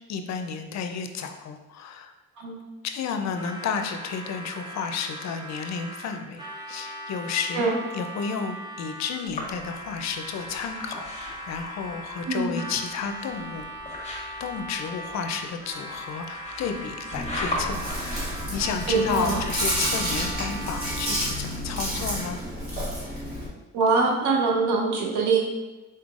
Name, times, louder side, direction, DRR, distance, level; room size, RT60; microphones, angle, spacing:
voice 1, 0.1-2.1 2.8-13.7 14.4-22.4, left 6 dB, 60° left, 6 dB, 0.5 m, -32 dB
Harmonica, 3.3-21.6, right 1 dB, 15° right, 0.7 m, -39 dB
sound 1, 9.2-20.7, left 2 dB, 20° left, 1.2 m, -39 dB
voice 2, 12.3-12.6 18.9-19.4 23.7-25.4, right 4 dB, 75° right, 0 dB, 0.8 m, -23 dB
Chewing mastication, 17.1-23.5, equal, 30° right, 1.4 m, -30 dB
4.1 x 3.7 x 2.4 m, 1.1 s
cardioid pair, 90°, 30 cm